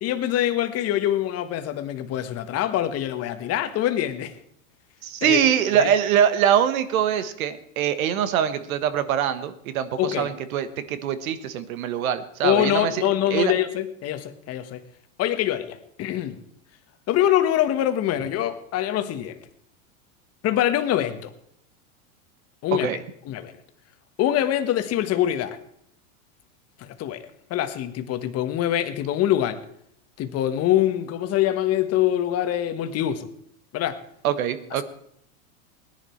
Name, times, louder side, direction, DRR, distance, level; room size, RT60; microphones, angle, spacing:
voice 1, 0.0-4.3 5.2-5.4 5.8-5.9 10.0-10.3 12.4-14.8 15.2-16.4 17.1-19.4 20.4-21.3 22.6-22.9 23.2-23.5 24.2-25.6 26.8-29.6 30.2-33.3 33.7-34.0, left 12 dB, 35° left, 1.3 m, -24 dB
voice 2, 5.0-12.9 13.3-13.5 22.8-23.0 34.2-34.8, right 9 dB, 75° right, 1.5 m, -23 dB
19.0 x 10.5 x 4.5 m
supercardioid pair, 130°, 42 cm